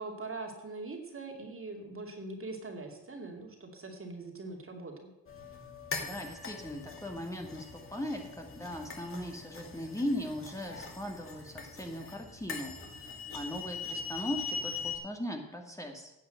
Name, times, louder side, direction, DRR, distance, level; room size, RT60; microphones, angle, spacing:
voice 1, 0.0-5.1, right 3 dB, 40° right, 2 dB, 2.6 m, -42 dB
sound 1, 5.3-15.0, left 4 dB, 35° left, 2.4 m, -42 dB
voice 2, 6.0-16.1, equal, 10° left, 2 dB, 2.1 m, -39 dB
10.5 x 6.9 x 7.8 m, 0.96 s
supercardioid pair, 60°, 35 cm